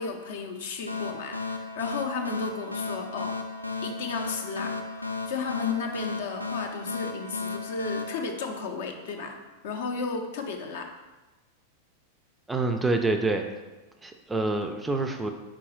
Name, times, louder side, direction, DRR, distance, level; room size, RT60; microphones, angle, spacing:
voice 1, 0.0-3.4 3.8-11.0, left 4 dB, 55° left, 4 dB, 0.5 m, -34 dB
sound 1, 0.9-9.2, left 3 dB, 90° right, 0.3 m, -35 dB
voice 2, 12.5-13.4 14.0-15.3, right 2 dB, 10° right, 5 dB, 0.3 m, -26 dB
4.0 x 3.7 x 3.1 m, 1.1 s
figure-of-eight pair, 90°, 0 cm